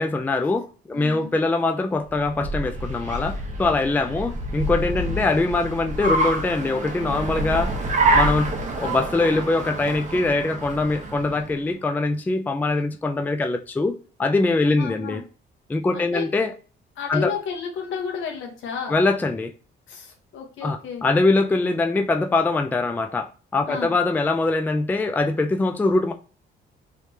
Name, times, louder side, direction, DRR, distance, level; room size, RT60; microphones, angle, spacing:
voice 1, 0.0-7.7 8.1-8.5 8.8-15.2 15.7-16.5 17.1-17.3 18.9-19.5 20.6-26.1, left 3 dB, 10° left, 0.3 m, -23 dB
voice 2, 0.9-1.3 5.0-5.1 14.6-15.2 15.9-16.3 17.0-19.0 19.9-21.0 23.7-23.9, left 6 dB, 80° left, 1.2 m, -32 dB
Car, 2.1-11.6, right 2 dB, 40° right, 0.9 m, -27 dB
3.2 x 3.2 x 2.8 m
cardioid pair, 90°, 20 cm